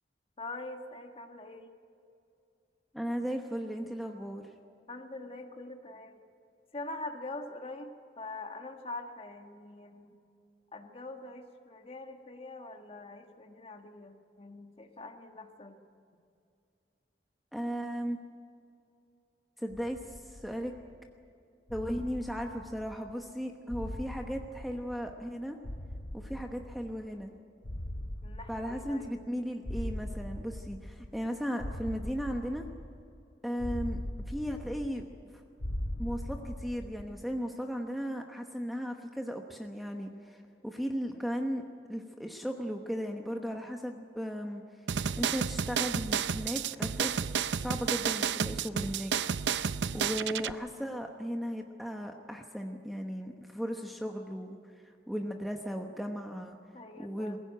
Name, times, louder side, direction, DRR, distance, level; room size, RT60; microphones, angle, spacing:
voice 1, 0.4-1.7 4.9-6.2 6.7-10.1 10.7-15.8 28.2-29.2 56.7-57.4, left 2 dB, 35° left, 5 dB, 1.7 m, -44 dB
voice 2, 2.9-4.4 17.5-18.2 19.6-20.7 21.7-25.6 26.1-27.3 28.5-32.7 33.4-34.0 34.3-35.4 36.0-41.6 41.9-44.6 45.2-47.3 47.6-49.1 49.9-54.6 54.8-56.6 57.0-57.4, equal, ahead, 3 dB, 1.0 m, -36 dB
sound 1, 19.7-21.0 21.7-23.2 23.7-25.3 25.6-27.2 27.6-29.3 29.6-31.3 31.6-33.2 33.6-35.3 35.6-37.2, left 1 dB, 70° left, 1.3 m, -41 dB
sound 2, 44.9-50.5, right 7 dB, 80° right, 0.6 m, -31 dB
22.0 x 16.0 x 9.1 m, 2.5 s
head